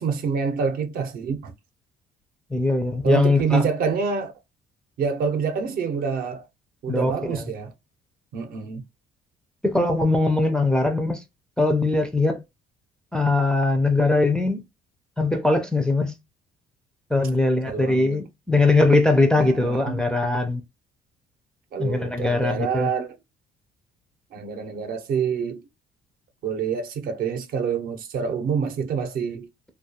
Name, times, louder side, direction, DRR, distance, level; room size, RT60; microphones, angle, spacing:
voice 1, 0.0-1.5 3.0-4.3 5.0-6.4 6.8-7.7 8.3-8.8 17.7-18.2 19.4-20.0 21.7-23.2 24.3-25.6 26.4-29.5, right 6 dB, 60° right, 0.6 m, -27 dB
voice 2, 2.5-3.6 6.9-7.4 9.6-11.2 11.6-12.4 13.1-14.6 15.2-16.2 17.1-20.6 21.8-22.9, left 2 dB, 5° left, 0.4 m, -21 dB
2.3 x 2.2 x 2.7 m
cardioid pair, 110°, 17 cm